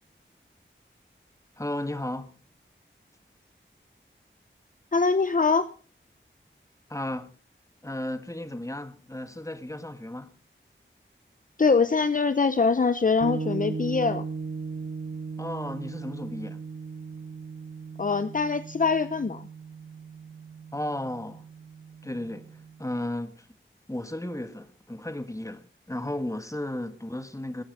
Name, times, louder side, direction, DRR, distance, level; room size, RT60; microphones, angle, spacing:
voice 1, 1.6-2.3 6.9-7.3 7.8-10.4 15.4-16.6 20.7-21.4 22.0-23.5 23.9-27.6, left 1 dB, 15° left, 1.6 m, -34 dB
voice 2, 4.9-5.7 11.6-14.2 18.0-19.5, left 4 dB, 40° left, 0.7 m, -23 dB
sound 1, 13.2-22.9, right 4 dB, 75° right, 1.5 m, -37 dB
20.5 x 8.5 x 5.4 m
wide cardioid pair, 70°, 21 cm